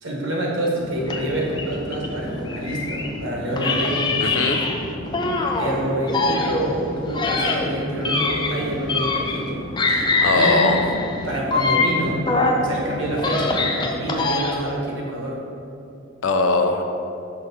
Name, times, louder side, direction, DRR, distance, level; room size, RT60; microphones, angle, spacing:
voice 1, 0.0-4.1 5.6-9.6 10.3-10.6 11.2-12.2 12.6-15.4, right 1 dB, 70° right, -2 dB, 1.2 m, -27 dB
Chatter / Fixed-wing aircraft airplane, 0.5-14.0, equal, 55° left, 1.2 m, -34 dB
sound 1, 1.1-3.1 3.6-5.7 6.1-9.5 9.8-12.7 13.1-14.8, left 3 dB, 20° left, 0.3 m, -24 dB
voice 2, 4.2-4.6 9.9-10.8 16.2-16.8, left 3 dB, 80° left, 5 dB, 0.5 m, -21 dB
5.8 x 3.3 x 5.5 m, 2.6 s
head